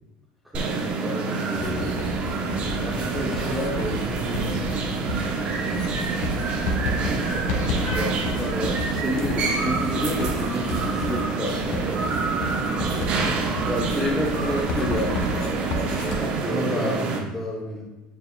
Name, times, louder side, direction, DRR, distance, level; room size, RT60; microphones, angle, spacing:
voice 1, 0.5-1.4 7.3-11.8 12.7-15.5 16.0-17.0, left 1 dB, 5° right, -4 dB, 0.8 m, -30 dB
sound 1, 0.5-17.2, right 4 dB, 40° right, 0.8 m, -27 dB
voice 2, 1.2-2.2 2.8-6.1 16.3-17.8, equal, 10° left, -3 dB, 1.9 m, -32 dB
Writing, 1.6-16.2, left 3 dB, 70° left, 1.5 m, -32 dB
10.0 x 4.7 x 2.2 m, 1.1 s
cardioid pair, 150°, 3 cm